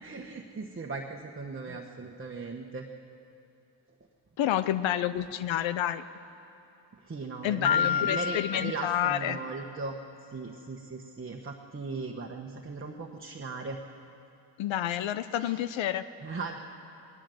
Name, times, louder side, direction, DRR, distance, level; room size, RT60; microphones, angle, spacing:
voice 1, 0.0-2.9 7.1-10.0 10.3-13.8 15.4-15.6 16.2-16.6, right 3 dB, 30° right, 1 dB, 1.3 m, -38 dB
voice 2, 4.4-6.0 7.4-9.4 14.6-16.0, left 11 dB, 80° left, 13 dB, 0.7 m, -29 dB
Piano, 7.6-9.5, left 8 dB, 50° left, 0.9 m, -30 dB
19.5 x 18.0 x 7.8 m, 2.9 s
cardioid pair, 70°, 45 cm